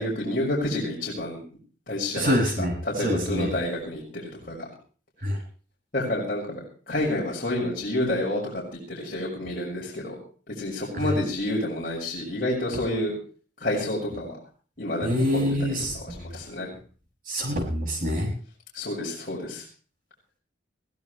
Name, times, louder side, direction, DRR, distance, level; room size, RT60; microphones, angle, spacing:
voice 1, 0.0-1.4 1.9-4.7 5.9-6.6 6.9-10.2 10.6-13.1 13.6-14.4 14.8-15.2 15.9-16.7 18.7-19.6, left 1 dB, 50° left, -5 dB, 6.2 m, -29 dB
voice 2, 2.1-3.5 5.2-5.4 10.9-11.1 15.0-15.9 17.3-18.3, equal, 45° right, 1 dB, 6.8 m, -26 dB
22.5 x 16.0 x 3.3 m, 0.40 s
head